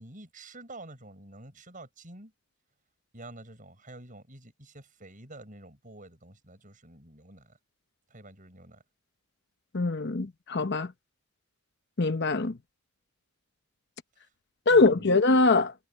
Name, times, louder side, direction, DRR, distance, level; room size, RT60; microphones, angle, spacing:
voice 1, 0.0-2.3 3.1-7.6 8.1-8.8 14.2-14.3 14.7-15.1, right 2 dB, 35° right, 7.3 m, -48 dB
voice 2, 9.7-10.9 12.0-12.6 14.7-15.7, left 3 dB, 50° left, 0.9 m, -23 dB
head